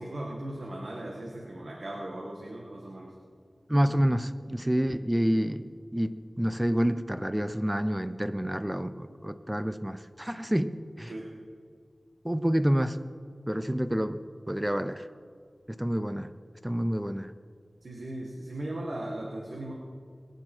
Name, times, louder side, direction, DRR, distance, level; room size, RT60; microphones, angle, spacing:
voice 1, 0.0-3.2 11.1-11.3 17.8-19.7, right 1 dB, 75° right, -2 dB, 1.8 m, -38 dB
voice 2, 3.7-11.1 12.2-13.0 13.5-15.1 15.7-16.3 16.6-17.3, equal, 10° right, 10 dB, 0.6 m, -28 dB
22.0 x 9.7 x 4.5 m, 2.1 s
wide cardioid pair, 55°, 0 cm